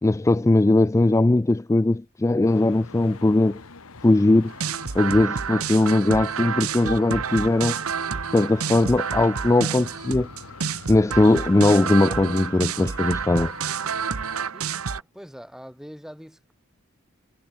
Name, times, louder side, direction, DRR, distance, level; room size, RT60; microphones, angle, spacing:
voice 1, 0.0-3.6 4.0-4.5 4.9-7.8 8.3-10.3 10.9-13.5, left 2 dB, 15° left, 0.3 m, -19 dB
Traffic noise roadway noise, 2.4-14.5, left 4 dB, 80° left, 1.6 m, -45 dB
sound 1, 4.5-15.0, right 6 dB, 85° right, 1.0 m, -29 dB
voice 2, 14.5-16.5, equal, ahead, 3.5 m, -44 dB
head